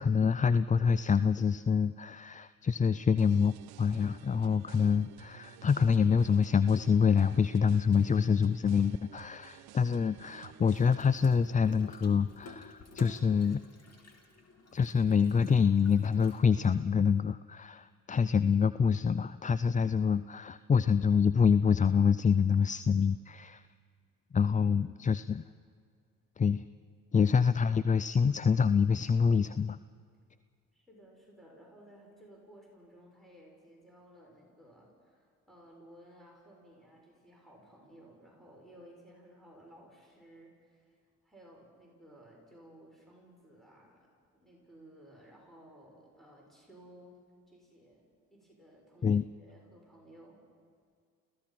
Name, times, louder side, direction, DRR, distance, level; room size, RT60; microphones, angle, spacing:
voice 1, 0.0-13.6 14.7-23.6 24.3-25.4 26.4-26.6 27.1-29.8 49.0-49.2, left 6 dB, 20° left, 15 dB, 0.4 m, -26 dB
sound 1, 3.2-11.1, right 13 dB, 70° right, 0.9 m, -52 dB
Water tap faucet / Sink (filling or washing), 10.7-16.8, left 2 dB, 40° left, 3.0 m, -52 dB
voice 2, 30.7-41.0 41.2-44.1 44.3-47.2 47.5-50.4, right 1 dB, ahead, -3 dB, 6.8 m, -57 dB
29.5 x 16.0 x 6.0 m, 2.2 s
hypercardioid pair, 60°, 39 cm